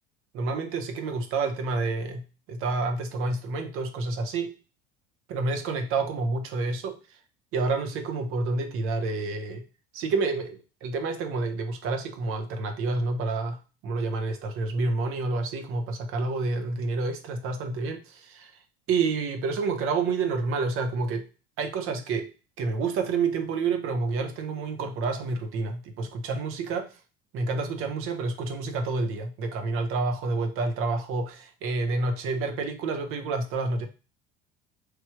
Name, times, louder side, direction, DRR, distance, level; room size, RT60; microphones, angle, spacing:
voice 1, 0.3-4.5 5.3-7.0 7.5-9.6 9.9-18.5 18.9-21.3 21.6-22.3 22.6-27.0 27.3-33.9, right 3 dB, 45° right, 6 dB, 0.9 m, -29 dB
3.3 x 2.9 x 4.6 m, 0.34 s
figure-of-eight pair, 70°, 31 cm